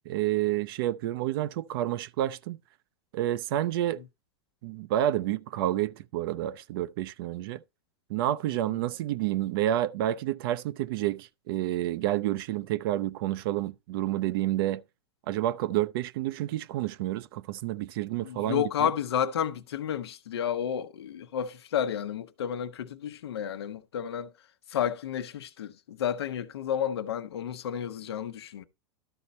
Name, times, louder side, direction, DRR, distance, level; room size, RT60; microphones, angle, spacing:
voice 1, 0.0-2.6 3.1-4.0 4.6-7.6 8.1-14.8 15.3-18.9, right 13 dB, 65° right, 0.5 m, -29 dB
voice 2, 18.2-24.3 24.7-28.6, left 9 dB, 85° left, 0.9 m, -31 dB
12.5 x 4.2 x 4.1 m
hypercardioid pair, 110°, 13 cm